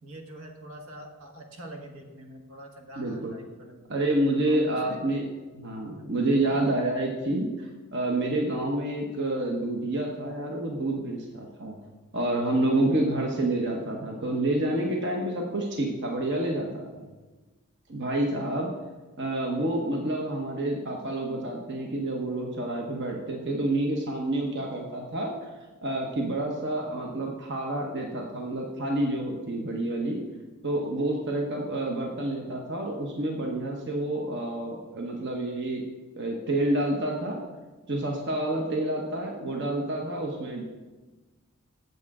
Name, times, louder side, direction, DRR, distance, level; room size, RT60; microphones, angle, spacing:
voice 1, 0.0-3.9 4.5-5.0 5.7-6.2 6.5-6.7 13.0-13.3, right 1 dB, 75° right, 3 dB, 1.3 m, -45 dB
voice 2, 3.0-3.3 3.9-5.3 5.5-11.8 12.1-17.0 17.9-18.7 19.2-25.5 25.8-30.2 30.6-35.8 36.2-37.4 37.9-40.6, right 1 dB, 55° right, 1 dB, 1.0 m, -28 dB
8.3 x 7.4 x 4.8 m, 1.2 s
head